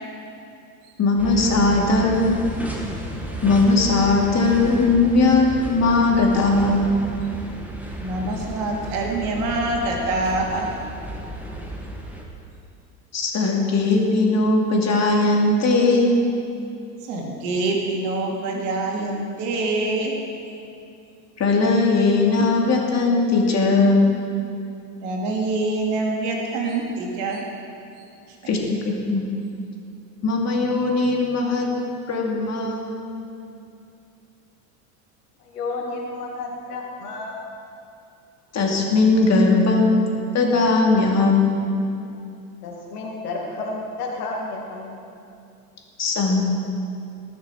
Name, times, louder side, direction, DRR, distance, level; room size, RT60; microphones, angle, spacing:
voice 1, 1.0-2.4 3.4-6.9 13.1-16.1 21.4-24.1 28.5-28.6 28.8-29.2 30.2-31.7 32.1-33.0 38.5-40.1 40.3-41.6 46.0-46.4, left 3 dB, 35° left, 0 dB, 2.6 m, -19 dB
sound 1, 1.2-12.2, right 1 dB, 5° right, 1.8 m, -33 dB
voice 2, 8.0-10.7 17.0-20.1 25.0-27.4, right 2 dB, 65° right, 0 dB, 2.5 m, -25 dB
voice 3, 35.4-37.5 42.6-45.1, left 3 dB, 80° left, 0 dB, 2.2 m, -31 dB
19.0 x 6.9 x 4.8 m, 2.6 s
hypercardioid pair, 80°, 45 cm